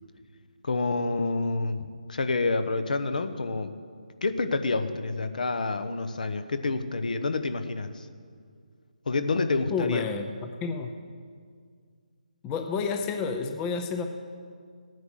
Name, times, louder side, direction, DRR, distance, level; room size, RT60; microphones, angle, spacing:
voice 1, 0.6-3.7 4.2-8.1 9.1-10.0, left 3 dB, 65° left, 10 dB, 1.1 m, -28 dB
voice 2, 9.7-10.3 10.6-10.9 12.4-14.0, left 5 dB, 15° left, 6 dB, 0.6 m, -30 dB
16.0 x 9.4 x 6.4 m, 2.1 s
figure-of-eight pair, 155°, 5 cm